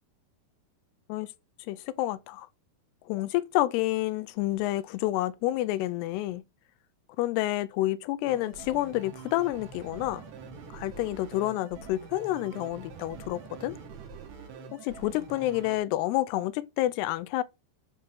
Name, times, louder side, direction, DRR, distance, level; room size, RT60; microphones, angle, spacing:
voice 1, 1.7-2.5 3.1-6.4 7.2-10.2 10.7-13.8 14.7-17.4, left 15 dB, 85° left, 2.6 m, -29 dB
sound 1, 8.3-15.8, right 5 dB, 90° right, 3.7 m, -45 dB
8.4 x 4.9 x 4.5 m
omnidirectional pair, 4.7 m